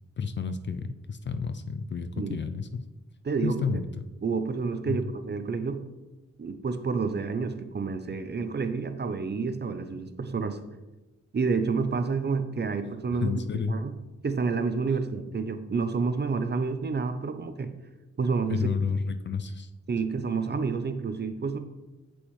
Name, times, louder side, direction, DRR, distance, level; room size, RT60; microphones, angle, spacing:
voice 1, 0.2-2.9 3.4-4.1 4.9-5.0 13.2-13.8 18.5-19.7, left 5 dB, 40° left, 10 dB, 0.4 m, -31 dB
voice 2, 4.2-5.8 6.4-10.6 11.3-13.4 13.7-13.9 14.2-17.7 18.2-18.7 19.9-21.6, right 4 dB, 35° right, 9 dB, 0.6 m, -29 dB
8.2 x 6.1 x 3.1 m, 1.1 s
cardioid pair, 90°, 29 cm